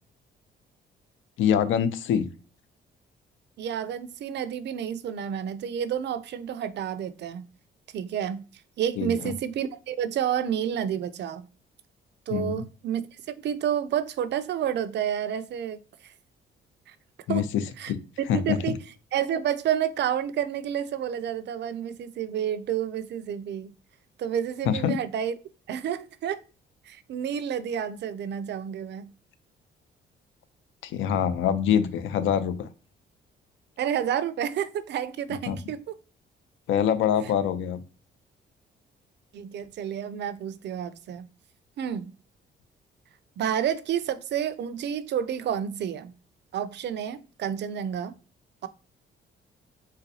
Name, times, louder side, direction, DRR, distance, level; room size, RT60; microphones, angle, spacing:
voice 1, 1.4-2.2 9.0-9.3 12.3-12.7 17.3-17.4 17.9-18.0 18.3-18.6 24.7-25.0 30.8-32.7 35.5-35.6 36.7-37.8, left 9 dB, 80° left, 0.5 m, -24 dB
voice 2, 3.6-7.5 7.9-8.4 8.8-11.5 12.3-16.1 16.9-17.0 17.3-17.5 17.8-17.9 18.3-18.8 19.1-23.7 24.2-25.3 25.7-26.4 26.9-29.1 33.8-36.0 37.2-37.3 39.3-41.3 41.8-42.1 43.4-46.1 46.5-48.1 48.6-48.7, right 9 dB, 60° right, 0.4 m, -30 dB
3.9 x 2.1 x 2.7 m
cardioid pair, 90°, 20 cm